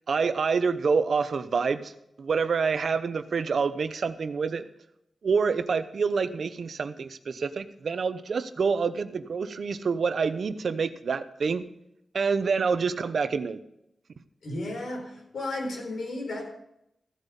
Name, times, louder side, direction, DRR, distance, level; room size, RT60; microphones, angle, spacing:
voice 1, 0.1-1.9 2.2-4.7 5.2-11.7 12.1-13.6, right 5 dB, 65° right, 12 dB, 0.8 m, -27 dB
voice 2, 14.4-16.5, left 2 dB, 85° left, 1 dB, 4.3 m, -33 dB
15.5 x 8.3 x 5.3 m, 0.80 s
wide cardioid pair, 115°, 0 cm